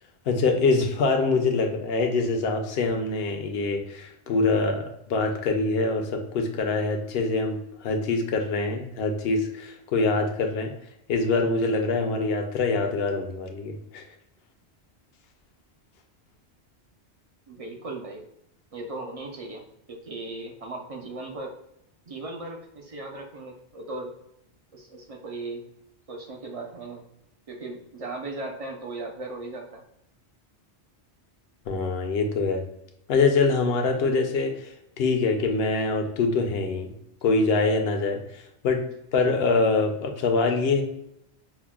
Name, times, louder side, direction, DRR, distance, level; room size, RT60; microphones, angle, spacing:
voice 1, 0.3-10.7 11.1-14.0 31.7-32.7 33.1-36.9 37.2-38.9 39.1-40.8, left 3 dB, 65° left, 4 dB, 0.8 m, -24 dB
voice 2, 17.5-18.2 18.7-19.6 19.9-21.6 22.1-24.1 24.7-25.6 26.1-27.1 27.5-29.8, right 2 dB, 45° right, 2 dB, 0.5 m, -37 dB
5.5 x 2.1 x 2.3 m, 0.79 s
omnidirectional pair, 1.1 m